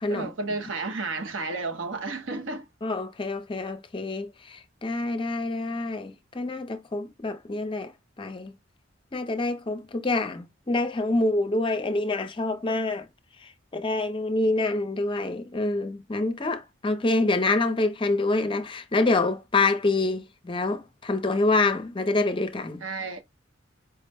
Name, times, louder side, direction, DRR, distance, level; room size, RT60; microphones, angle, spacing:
voice 1, 0.1-2.7 22.8-23.2, right 3 dB, 70° right, 0.9 m, -32 dB
voice 2, 2.8-8.5 9.1-13.1 13.4-22.8, left 2 dB, 25° left, 0.6 m, -26 dB
4.6 x 2.1 x 3.3 m
head